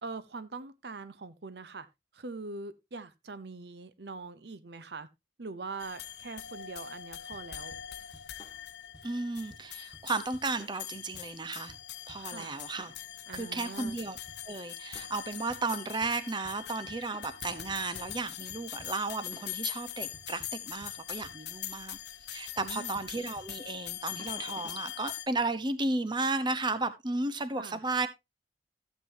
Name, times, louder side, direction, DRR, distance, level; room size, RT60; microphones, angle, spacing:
voice 1, 0.0-1.9 2.1-5.1 5.4-7.8 12.1-12.6 13.3-14.0 22.6-23.0 27.6-27.8, right 3 dB, 65° right, 0.7 m, -42 dB
sound 1, 5.8-25.3, left 12 dB, 65° left, 0.7 m, -42 dB
sound 2, 7.3-24.9, left 1 dB, 20° left, 1.7 m, -56 dB
voice 2, 9.0-11.8 12.1-12.9 13.3-14.2 14.5-22.0 22.3-28.1, right 3 dB, 25° right, 0.9 m, -34 dB
15.0 x 7.6 x 2.8 m
head